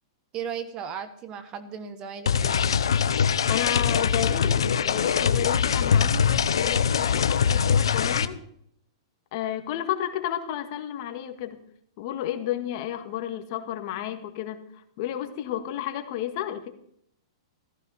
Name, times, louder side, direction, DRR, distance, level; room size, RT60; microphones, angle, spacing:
voice 1, 0.3-2.7, right 7 dB, 30° right, 11 dB, 1.4 m, -36 dB
sound 1, 2.3-8.3, left 7 dB, 85° left, 0.8 m, -23 dB
voice 2, 3.5-8.4 9.3-11.6 12.0-16.7, left 11 dB, 50° left, 6 dB, 1.9 m, -32 dB
15.0 x 14.5 x 4.4 m, 0.70 s
hypercardioid pair, 135°, 3 cm